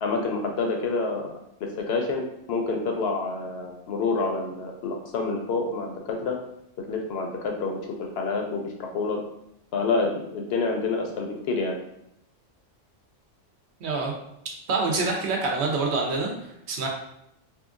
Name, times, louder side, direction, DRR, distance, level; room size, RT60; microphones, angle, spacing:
voice 1, 0.0-1.3 1.6-2.2 2.5-6.4 6.8-9.2 9.7-11.8, left 3 dB, 65° left, 2 dB, 0.7 m, -28 dB
voice 2, 13.8-14.1 14.7-16.3 16.7-16.9, right 3 dB, 65° right, 0 dB, 0.8 m, -26 dB
2.8 x 2.4 x 2.4 m, 0.78 s
omnidirectional pair, 1.3 m